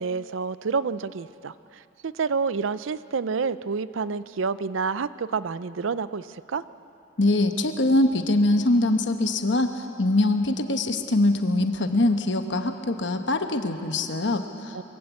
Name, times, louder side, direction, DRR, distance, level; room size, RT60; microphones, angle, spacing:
voice 1, 0.0-6.6 14.7-14.8, right 5 dB, 80° right, 16 dB, 0.5 m, -29 dB
voice 2, 7.2-14.8, left 2 dB, 65° left, 7 dB, 1.1 m, -23 dB
22.5 x 15.5 x 8.3 m, 2.8 s
head